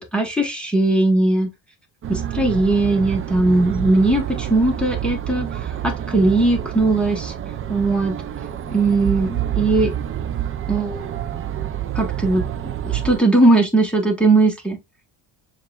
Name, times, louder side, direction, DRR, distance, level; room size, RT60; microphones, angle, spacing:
voice 1, 0.0-1.5 2.1-7.3 7.7-8.2 8.7-9.9 10.7-11.0 11.9-12.4 12.8-14.8, right 2 dB, ahead, 1.0 m, -19 dB
sound 1, 2.0-13.2, right 10 dB, 30° right, 0.4 m, -28 dB
7.1 x 2.4 x 2.3 m
cardioid pair, 105°, 48 cm